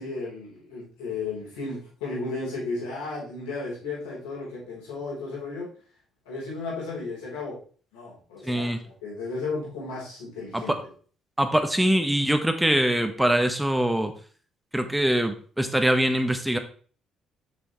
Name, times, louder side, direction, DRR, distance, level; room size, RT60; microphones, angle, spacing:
voice 1, 0.0-5.7 6.3-7.6 7.9-10.7, left 3 dB, 85° left, -6 dB, 3.6 m, -34 dB
voice 2, 8.4-8.9 10.5-10.8 11.4-14.1 14.7-16.6, right 1 dB, 5° right, 7 dB, 1.2 m, -23 dB
6.2 x 6.2 x 3.1 m, 0.42 s
hypercardioid pair, 55°, 0 cm